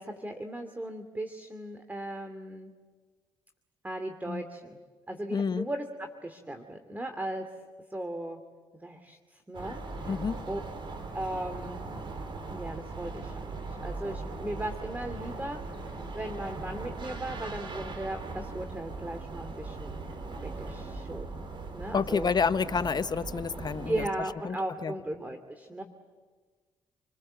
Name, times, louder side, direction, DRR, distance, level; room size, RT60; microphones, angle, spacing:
voice 1, 0.0-2.7 3.8-4.8 5.1-7.5 7.9-8.4 8.8-10.2 10.5-10.6 11.1-11.9 12.5-20.0 20.3-21.4 21.7-22.3 23.9-25.8, right 1 dB, 15° right, 7 dB, 2.7 m, -37 dB
voice 2, 5.3-5.7 10.1-10.3 21.9-24.0 24.4-24.6 24.8-24.9, left 5 dB, 45° left, 13 dB, 0.9 m, -29 dB
sound 1, 9.5-24.1, right 3 dB, 55° right, 4.9 m, -39 dB
28.5 x 21.0 x 7.7 m, 1.4 s
supercardioid pair, 55°, 10 cm